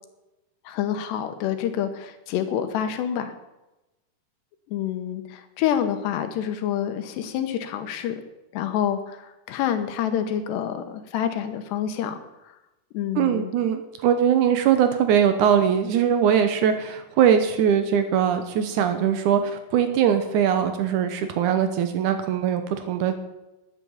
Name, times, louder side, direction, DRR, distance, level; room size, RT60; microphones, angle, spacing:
voice 1, 0.7-3.3 4.7-8.2 8.5-12.2 12.9-13.5, left 9 dB, 90° left, 8 dB, 3.3 m, -27 dB
voice 2, 13.2-23.2, right 8 dB, 80° right, 8 dB, 1.8 m, -21 dB
11.5 x 9.6 x 7.2 m, 0.99 s
omnidirectional pair, 4.8 m